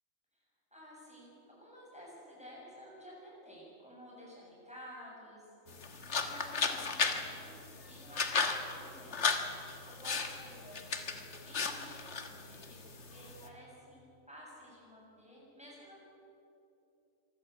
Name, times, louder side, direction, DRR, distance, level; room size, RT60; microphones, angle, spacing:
voice 1, 0.7-5.8 6.2-9.6 9.8-12.8 13.1-16.0, equal, 5° right, -5 dB, 7.4 m, -53 dB
sound 1, 5.7-13.5, left 5 dB, 60° left, 1.7 m, -36 dB
25.5 x 14.5 x 8.3 m, 2.8 s
omnidirectional pair, 1.3 m